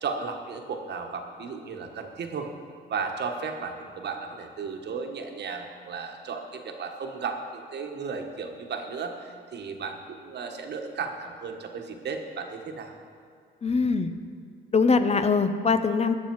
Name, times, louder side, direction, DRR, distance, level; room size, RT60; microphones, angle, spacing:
voice 1, 0.0-2.5 2.9-13.0, right 5 dB, 60° right, 4 dB, 1.3 m, -34 dB
voice 2, 13.6-14.1 14.7-16.1, left 4 dB, 30° left, 10 dB, 0.7 m, -22 dB
18.0 x 6.6 x 4.6 m, 2.2 s
cardioid pair, 90°, 20 cm